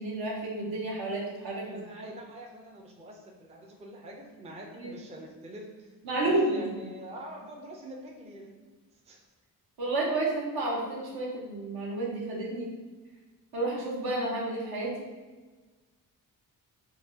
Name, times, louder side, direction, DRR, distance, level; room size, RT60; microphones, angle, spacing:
voice 1, 0.0-1.8 4.7-4.9 6.0-6.6 9.8-12.7 13.5-15.1, right 2 dB, 70° right, -3 dB, 1.1 m, -31 dB
voice 2, 1.6-5.9 6.2-8.7 8.9-9.2, right 1 dB, 15° right, 0 dB, 0.5 m, -45 dB
4.6 x 2.4 x 2.7 m, 1.3 s
cardioid pair, 80°, 39 cm